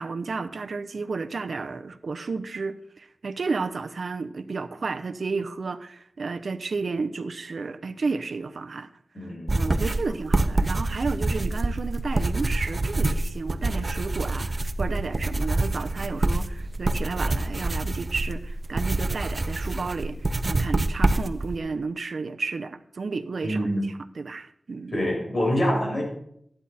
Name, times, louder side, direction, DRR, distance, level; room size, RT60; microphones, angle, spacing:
voice 1, 0.0-8.9 9.2-25.0, right 4 dB, 75° right, 0.7 m, -32 dB
voice 2, 9.1-9.6 23.4-23.8 24.9-26.0, equal, 50° left, 6.2 m, -25 dB
sound 1, 9.5-21.6, right 2 dB, 40° right, 0.8 m, -26 dB
14.0 x 9.8 x 4.3 m
wide cardioid pair, 80°, 0 cm